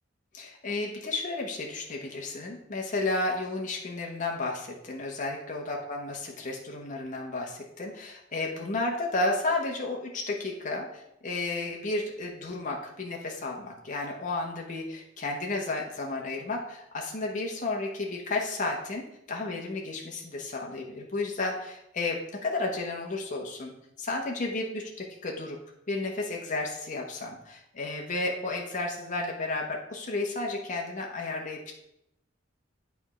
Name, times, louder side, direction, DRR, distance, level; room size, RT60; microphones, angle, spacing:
voice 1, 0.3-23.7 24.0-25.6 25.9-31.7, left 2 dB, 40° left, 0 dB, 1.1 m, -32 dB
8.5 x 3.6 x 5.5 m, 0.81 s
head